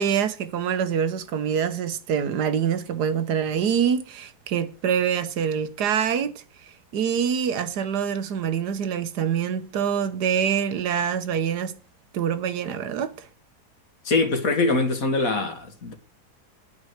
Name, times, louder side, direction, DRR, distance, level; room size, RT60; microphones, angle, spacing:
voice 1, 0.0-6.3 6.9-11.8 12.1-13.3, right 8 dB, 85° right, 1.5 m, -25 dB
voice 2, 14.0-15.9, left 3 dB, 60° left, 2.1 m, -23 dB
9.7 x 5.6 x 7.9 m
omnidirectional pair, 1.7 m